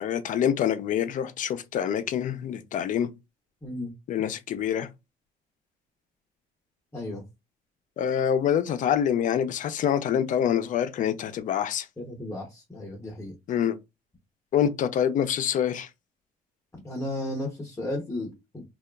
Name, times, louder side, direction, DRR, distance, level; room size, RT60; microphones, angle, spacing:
voice 1, 0.0-3.1 4.1-4.9 8.0-11.9 13.5-13.7 14.5-15.9, left 9 dB, 50° left, 0.4 m, -26 dB
voice 2, 6.9-7.2 12.0-13.4 16.8-18.6, left 1 dB, 15° left, 0.7 m, -34 dB
2.7 x 2.3 x 2.2 m
cardioid pair, 110°, 17 cm